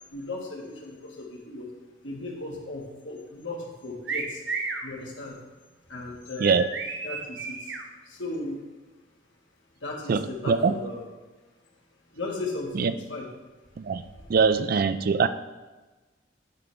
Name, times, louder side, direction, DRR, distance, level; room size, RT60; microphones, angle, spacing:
voice 1, 0.1-1.7 2.0-4.4 4.8-5.4 5.9-6.6 7.0-7.7 8.0-8.6 9.8-11.0 12.1-13.3 14.1-14.3, left 2 dB, 75° left, -1 dB, 1.6 m, -36 dB
sound 1, 4.1-4.8 6.4-7.8, right 4 dB, 65° right, 0.9 m, -32 dB
voice 2, 10.1-10.7 12.8-12.9 13.8-14.0 14.3-15.3, right 5 dB, 50° right, 12 dB, 0.4 m, -22 dB
10.0 x 3.3 x 5.3 m, 1.2 s
head